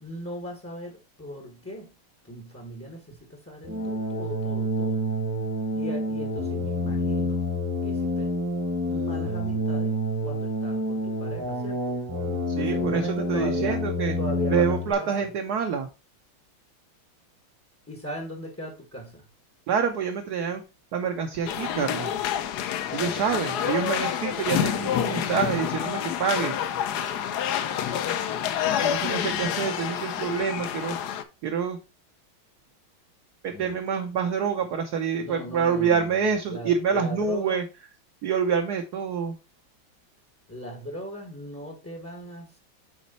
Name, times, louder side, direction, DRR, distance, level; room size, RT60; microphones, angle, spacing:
voice 1, 0.0-1.9 2.2-5.0 5.7-7.4 7.8-8.3 8.8-12.0 12.6-15.3 17.9-19.3 23.0-23.3 23.6-24.1 28.5-29.5 33.5-33.8 34.6-34.7 35.2-37.6 40.5-42.6, equal, 10° left, 0.7 m, -39 dB
sound 1, 3.6-14.9, left 1 dB, 15° right, 0.9 m, -28 dB
voice 2, 12.5-14.1 14.5-15.9 19.7-20.6 20.9-22.1 22.9-26.5 28.8-30.9 31.4-31.8 33.4-37.6 38.2-39.3, right 6 dB, 60° right, 1.1 m, -27 dB
sound 2, 21.5-31.2, left 9 dB, 65° left, 1.0 m, -28 dB
7.3 x 4.3 x 4.1 m
omnidirectional pair, 2.2 m